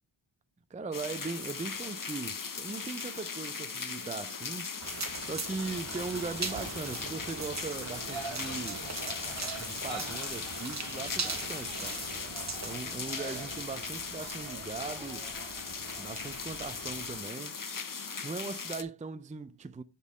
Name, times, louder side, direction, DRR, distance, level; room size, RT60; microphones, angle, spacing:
voice 1, 0.7-4.7 5.2-8.9 9.6-12.0 12.6-15.3 16.0-17.6 18.2-19.8, right 4 dB, 15° right, 0.4 m, -39 dB
sound 1, 0.9-18.8, left 5 dB, 45° left, 0.8 m, -39 dB
sound 2, 4.8-12.8, right 4 dB, 35° right, 0.9 m, -40 dB
sound 3, 5.6-17.2, right 4 dB, 90° right, 1.5 m, -45 dB
6.3 x 5.5 x 4.8 m
wide cardioid pair, 55°, 45 cm